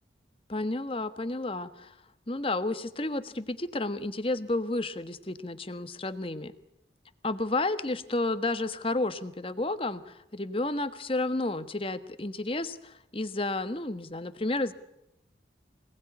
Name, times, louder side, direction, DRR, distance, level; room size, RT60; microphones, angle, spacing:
voice 1, 0.5-1.9 2.3-6.5 7.2-14.7, left 2 dB, 30° left, 11 dB, 1.4 m, -31 dB
26.5 x 19.0 x 9.8 m, 0.84 s
head